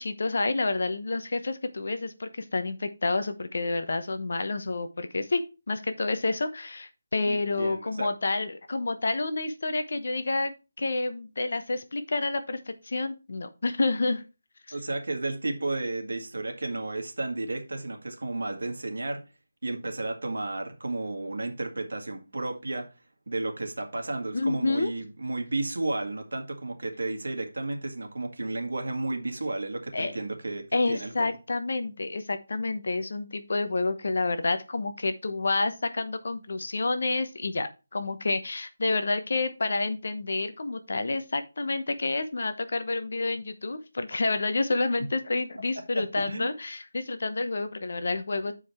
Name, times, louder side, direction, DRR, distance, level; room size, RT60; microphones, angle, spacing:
voice 1, 0.0-10.5 10.8-14.2 14.7-14.8 24.3-24.9 29.9-30.1 30.7-48.5, left 3 dB, 55° left, 0.9 m, -29 dB
voice 2, 7.3-8.1 14.7-19.2 19.6-22.9 23.3-31.3 45.9-46.5, right 2 dB, 80° right, 1.8 m, -32 dB
7.7 x 4.9 x 4.4 m
figure-of-eight pair, 175°, 0 cm